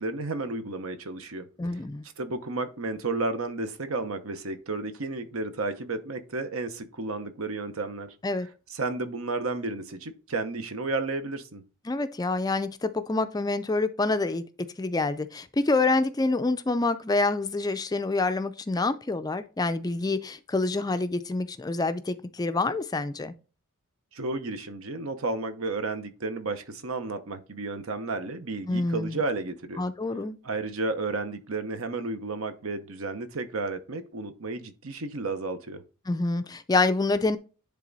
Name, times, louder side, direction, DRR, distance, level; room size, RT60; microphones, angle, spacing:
voice 1, 0.0-1.5 2.2-8.1 8.7-11.6 24.1-29.9 30.4-35.8, right 3 dB, 75° right, 0.9 m, -32 dB
voice 2, 1.6-2.1 8.2-8.5 11.9-14.4 14.8-23.3 28.7-29.2 29.8-30.4 36.1-37.4, left 3 dB, 20° left, 0.4 m, -27 dB
10.5 x 3.5 x 4.0 m
head